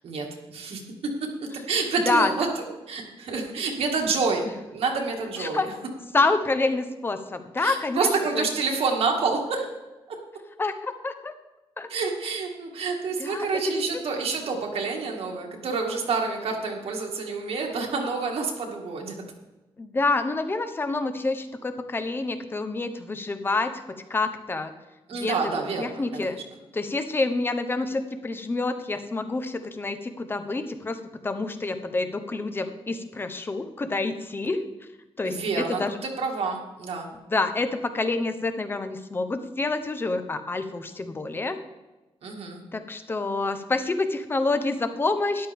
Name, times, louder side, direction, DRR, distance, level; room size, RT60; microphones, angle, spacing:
voice 1, 0.0-4.5 4.7-5.7 7.6-9.7 10.1-10.2 11.9-19.1 25.1-26.4 35.2-37.1 42.2-42.6, right 4 dB, 75° right, 1 dB, 2.1 m, -28 dB
voice 2, 6.1-8.1 8.3-8.5 10.6-11.3 11.8-11.9 13.2-13.8 19.8-23.8 24.1-24.7 25.2-25.4 25.8-26.4 26.7-31.0 31.2-34.6 35.2-36.0 37.3-41.6 42.7-45.5, left 3 dB, 20° left, 9 dB, 0.8 m, -27 dB
13.0 x 11.0 x 3.6 m, 1.1 s
wide cardioid pair, 175°, 10 cm